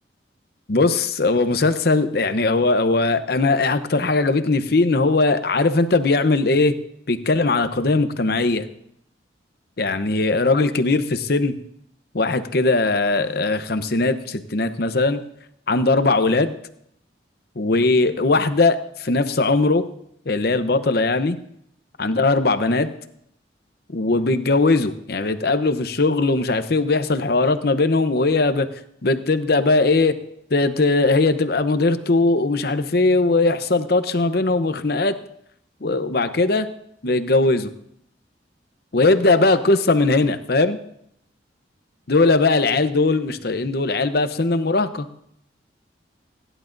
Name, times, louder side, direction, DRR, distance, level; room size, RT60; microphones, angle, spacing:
voice 1, 0.7-6.7 7.1-8.7 9.8-11.6 12.1-15.2 15.7-16.5 17.6-19.9 20.3-21.4 22.0-22.9 23.9-28.7 29.0-30.2 30.5-35.2 35.8-36.7 37.0-37.7 38.9-40.8 42.1-45.1, left 3 dB, 55° left, 10 dB, 0.8 m, -19 dB
28.5 x 11.0 x 2.6 m, 0.72 s
head